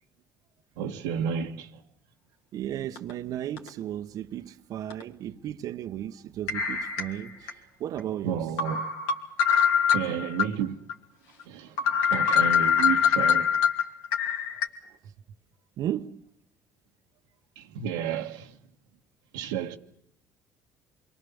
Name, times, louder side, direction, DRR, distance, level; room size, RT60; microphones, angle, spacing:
voice 1, 0.8-1.8 8.2-8.9 9.9-10.8 11.5-13.5 17.5-18.6 19.3-19.8, right 8 dB, 85° right, 1.4 m, -31 dB
voice 2, 2.5-8.6 15.8-16.2, right 11 dB, 60° right, 1.0 m, -35 dB
sound 1, 3.0-3.1 3.6-3.7 4.9-5.0 6.5-7.5 8.0-8.1 8.6-10.5 10.9-11.0 11.4-11.5 11.8-14.7, left 7 dB, 80° left, 3.0 m, -24 dB
27.5 x 22.5 x 7.1 m
supercardioid pair, 75°, 7 cm